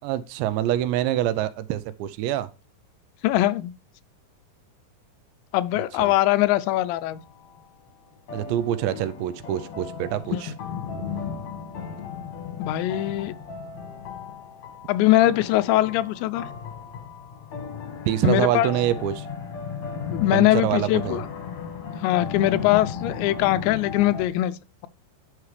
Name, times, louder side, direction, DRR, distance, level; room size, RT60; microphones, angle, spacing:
voice 1, 0.0-2.5 5.7-6.1 8.3-10.5 18.1-19.3 20.3-21.2, right 12 dB, 80° right, 2.8 m, -25 dB
voice 2, 3.2-3.7 5.5-7.2 10.3-10.4 12.6-13.3 14.9-16.5 18.2-18.7 20.1-21.3 22.0-24.6, left 15 dB, 85° left, 2.8 m, -21 dB
sound 1, 7.2-7.6 8.3-24.3, left 6 dB, 55° left, 2.0 m, -35 dB
10.5 x 6.4 x 3.2 m
omnidirectional pair, 5.2 m